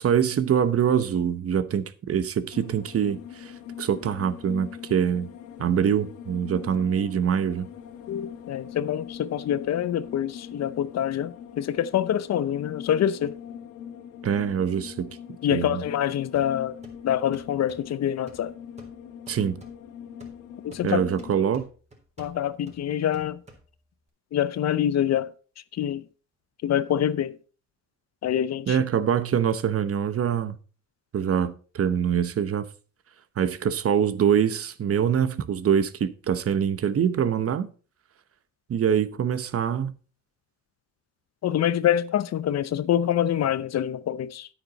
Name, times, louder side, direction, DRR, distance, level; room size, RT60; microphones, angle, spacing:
voice 1, 0.0-3.5 3.8-5.3 5.6-7.7 14.2-15.2 15.5-15.8 19.3-19.6 20.8-21.7 28.7-30.6 31.1-32.7 33.4-37.7 38.7-39.9, right 8 dB, 50° right, 0.9 m, -24 dB
sound 1, 2.5-21.3, left 8 dB, 90° left, 1.2 m, -42 dB
voice 2, 8.1-13.4 15.4-16.8 17.0-18.5 20.6-21.0 22.2-23.4 24.3-25.3 25.8-26.0 26.6-27.4 28.2-28.8 41.4-44.5, left 10 dB, 60° left, 0.7 m, -25 dB
sound 2, 16.3-24.1, right 2 dB, 20° right, 3.5 m, -53 dB
9.6 x 8.9 x 4.1 m
cardioid pair, 90°, 30 cm